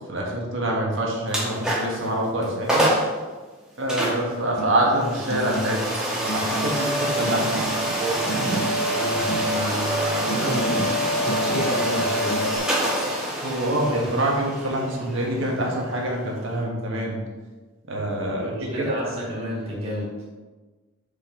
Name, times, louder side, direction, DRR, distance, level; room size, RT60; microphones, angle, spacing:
voice 1, 0.1-2.9 3.8-7.5 13.4-17.2 17.9-18.5, right 1 dB, 65° right, -1 dB, 1.6 m, -25 dB
sound 1, 1.3-2.0 2.4-2.5 2.7-3.1 3.9-16.6, right 1 dB, 5° right, 1.5 m, -26 dB
sound 2, 4.6-4.9 5.2-5.9 6.3-7.0 7.3-7.9 8.3-9.0 9.3-9.9 10.3-11.0 11.3-11.9 12.3-12.6, left 2 dB, 50° left, 0.6 m, -33 dB
voice 2, 8.0-12.6 18.3-20.2, equal, 30° right, -7 dB, 2.1 m, -31 dB
6.8 x 5.2 x 3.9 m, 1.3 s
head